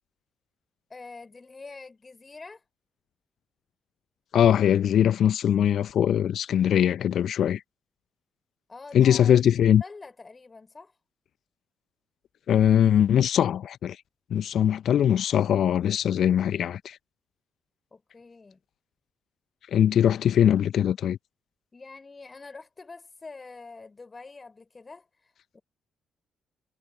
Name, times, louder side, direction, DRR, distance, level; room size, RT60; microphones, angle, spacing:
voice 1, 0.9-2.6 8.7-9.3 9.8-10.9 17.9-18.6 21.7-25.6, left 3 dB, 30° left, 4.5 m, -45 dB
voice 2, 4.3-7.6 8.9-9.8 12.5-14.0 14.3-17.0 19.7-21.2, left 9 dB, 55° left, 0.8 m, -21 dB
figure-of-eight pair, 40°, 0 cm